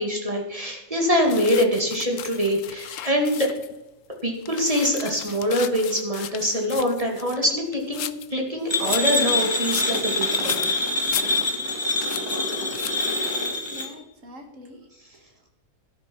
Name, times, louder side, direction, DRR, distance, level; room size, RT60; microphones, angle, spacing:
voice 1, 0.0-3.5 4.2-10.6, equal, 25° right, 1 dB, 2.4 m, -24 dB
sound 1, 1.3-3.8 4.2-8.3 8.7-11.7 12.0-12.4 12.7-13.2, left 11 dB, 70° left, 1.0 m, -36 dB
sound 2, 8.7-13.9, left 2 dB, 20° left, 1.5 m, -25 dB
voice 2, 13.7-15.5, left 2 dB, 65° right, 4 dB, 2.3 m, -45 dB
13.0 x 11.0 x 4.6 m, 1.0 s
omnidirectional pair, 1.5 m